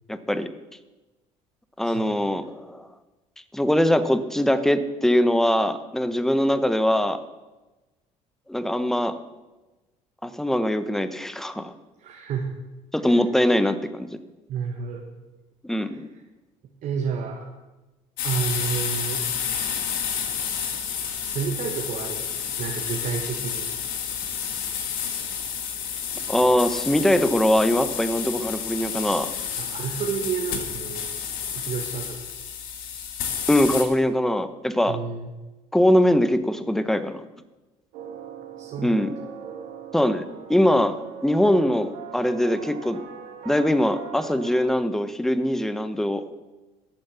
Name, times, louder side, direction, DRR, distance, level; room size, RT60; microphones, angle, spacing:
voice 1, 0.1-0.5 1.8-2.9 3.5-7.2 8.5-9.2 10.2-11.7 12.9-14.1 15.6-16.1 26.3-29.3 33.5-35.0 35.7-37.2 38.8-39.1 39.9-43.0 43.4-46.2, left 1 dB, 5° left, 11 dB, 0.9 m, -22 dB
voice 2, 1.8-2.2 12.0-12.5 13.0-13.2 14.5-15.0 15.8-16.0 16.8-17.5 18.2-19.3 21.2-23.7 29.6-31.1 31.4-32.3 34.9-35.3 38.6-38.9, right 6 dB, 60° right, 1 dB, 1.5 m, -30 dB
sound 1, 18.2-33.9, left 7 dB, 75° left, 1.8 m, -30 dB
sound 2, 37.9-44.6, right 8 dB, 85° right, 2.5 m, -40 dB
11.5 x 7.4 x 7.2 m, 1.1 s
supercardioid pair, 80°, 15 cm